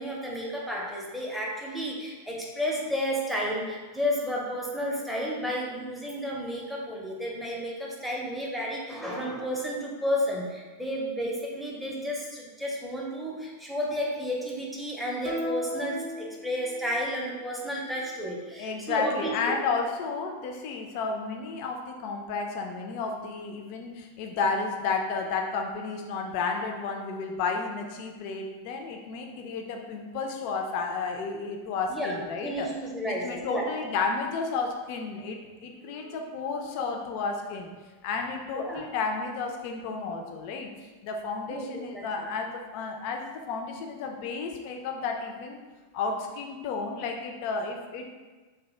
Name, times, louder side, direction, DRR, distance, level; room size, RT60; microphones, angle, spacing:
voice 1, 0.0-19.3 31.9-33.7 35.8-36.2 38.5-38.8 41.5-41.7 41.9-42.3, equal, ahead, -4 dB, 0.6 m, -32 dB
sound 1, 15.2-17.0, left 1 dB, 45° right, 0.6 m, -36 dB
voice 2, 18.6-32.7 33.0-37.7 38.0-40.7 41.0-45.6 45.9-48.1, left 4 dB, 45° left, 3 dB, 0.4 m, -32 dB
2.7 x 2.1 x 3.2 m, 1.3 s
figure-of-eight pair, 90°, 0 cm